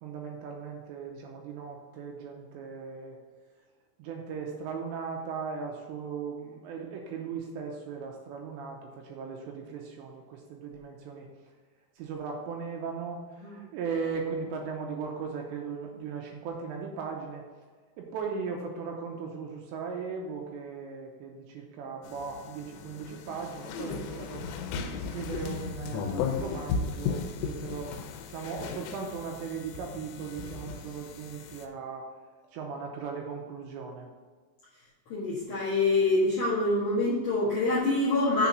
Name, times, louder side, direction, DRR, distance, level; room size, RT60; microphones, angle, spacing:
voice 1, 0.0-3.2 4.0-11.3 12.0-17.4 18.0-24.4 24.9-28.0 28.3-32.1 32.5-34.1, right 5 dB, 85° right, 1 dB, 2.7 m, -38 dB
sound 1, 22.0-31.7, left 5 dB, 90° left, 3.2 m, -36 dB
voice 2, 35.1-38.5, left 2 dB, 65° left, -10 dB, 1.9 m, -26 dB
7.2 x 3.8 x 5.8 m, 1.5 s
omnidirectional pair, 5.6 m